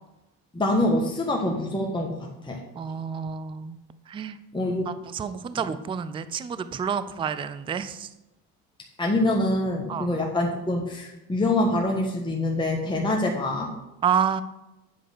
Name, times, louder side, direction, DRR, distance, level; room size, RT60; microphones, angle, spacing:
voice 1, 0.5-2.6 4.5-4.9 5.5-5.6 9.0-13.7, left 1 dB, 10° left, -1 dB, 1.4 m, -25 dB
voice 2, 2.7-3.8 4.1-4.4 4.9-8.1 9.9-10.1 14.0-14.4, right 7 dB, 15° right, 12 dB, 0.3 m, -29 dB
8.0 x 4.9 x 6.6 m, 0.94 s
hypercardioid pair, 75°, 49 cm